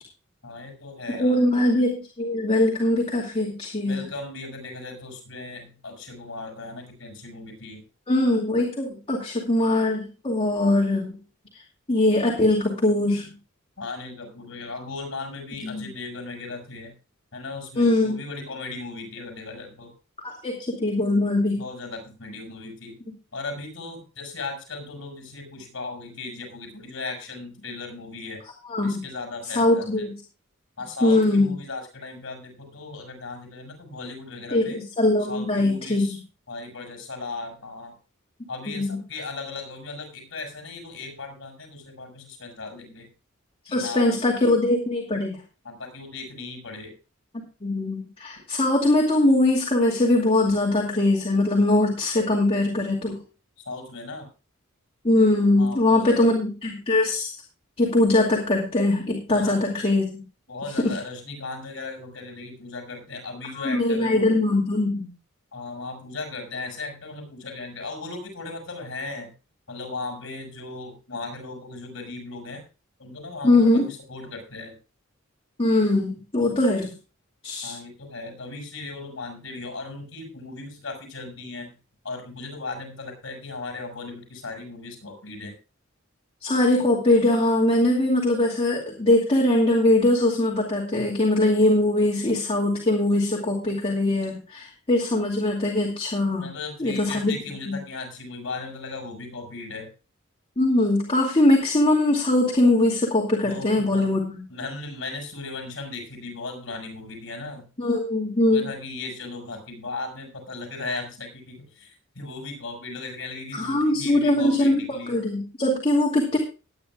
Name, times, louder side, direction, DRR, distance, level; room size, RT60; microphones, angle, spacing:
voice 1, 0.4-1.4 3.8-7.8 13.8-17.0 17.3-19.9 21.6-23.0 23.3-28.4 28.8-30.1 30.8-34.8 35.2-36.2 36.5-37.9 38.5-43.1 43.7-44.2 45.6-46.9 53.6-54.3 55.6-56.4 59.3-59.6 60.5-64.4 65.5-69.3 69.7-72.6 73.0-74.8 77.6-81.8 82.0-85.5 96.4-99.9 103.4-104.2 104.5-107.7 108.5-115.2, left 3 dB, 65° left, 2 dB, 6.4 m, -37 dB
voice 2, 1.1-4.0 8.1-11.2 11.5-11.6 11.9-13.3 15.6-15.9 17.8-18.2 20.2-21.6 28.7-29.0 29.5-30.1 31.0-31.5 34.5-36.2 38.7-39.0 43.7-45.4 47.6-53.2 55.0-57.3 57.8-60.2 60.8-60.9 63.5-65.1 73.4-73.9 75.6-76.9 77.4-77.7 86.4-96.5 96.8-97.3 97.7-97.8 100.6-104.4 107.8-108.7 113.5-114.7 115.1-116.4, left 1 dB, 30° left, -2 dB, 2.5 m, -21 dB
20.0 x 9.9 x 2.4 m, 0.33 s
head